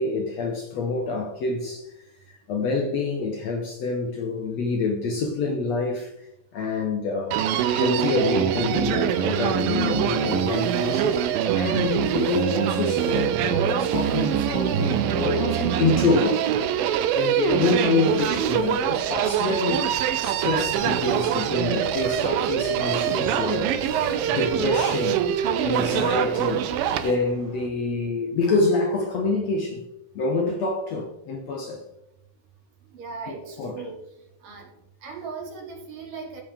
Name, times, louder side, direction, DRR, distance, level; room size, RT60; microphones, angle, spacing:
voice 1, 0.0-1.9 2.3-6.1 6.5-16.5 17.1-19.9 20.2-23.8 24.3-25.3 25.6-29.9 30.2-31.8 33.3-33.9, left 3 dB, 65° left, 1.8 m, -26 dB
Human voice, 7.3-27.1, right 9 dB, 85° right, 2.4 m, -24 dB
sound 1, 9.3-27.7, right 4 dB, 50° right, 2.2 m, -43 dB
sound 2, 10.2-16.6 17.1-17.2 17.5-17.6 17.9-18.8 19.1-20.3 20.6-22.3 22.8-23.3 23.7-24.2 24.6-25.2 25.6-26.2 26.4-26.5 26.8-27.2, left 2 dB, 25° left, 3.6 m, -51 dB
voice 2, 17.4-17.9 32.9-34.0 34.4-34.7 35.0-36.4, right 5 dB, 65° right, 4.0 m, -38 dB
15.0 x 7.1 x 3.5 m
omnidirectional pair, 4.1 m